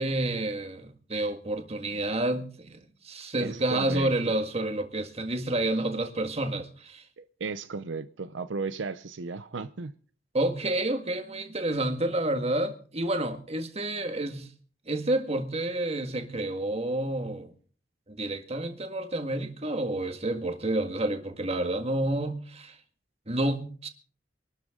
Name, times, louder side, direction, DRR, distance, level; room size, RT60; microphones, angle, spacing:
voice 1, 0.0-7.0 10.3-14.5 14.9-17.5 18.1-22.8 23.3-23.9, right 1 dB, 35° right, 1.9 m, -29 dB
voice 2, 3.4-4.3 7.2-9.9, right 4 dB, 80° right, 0.6 m, -35 dB
23.0 x 12.5 x 3.8 m
head